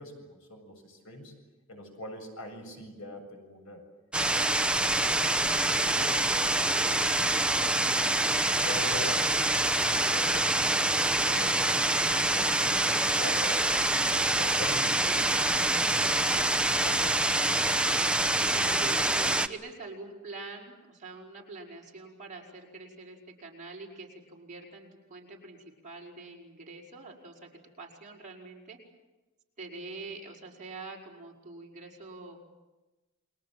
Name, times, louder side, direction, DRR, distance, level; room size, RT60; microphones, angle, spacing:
voice 1, 0.0-1.3 1.7-3.8 4.4-5.4 6.0-8.0 8.3-10.8 11.2-13.6 14.0-16.5 16.8-17.3, left 1 dB, 75° left, 3 dB, 7.5 m, -44 dB
sound 1, 4.1-19.5, right 2 dB, 5° right, 0.8 m, -26 dB
voice 2, 18.6-25.6 25.8-28.8 29.6-32.4, right 3 dB, 35° right, -1 dB, 5.3 m, -45 dB
30.0 x 23.0 x 7.6 m, 1.1 s
head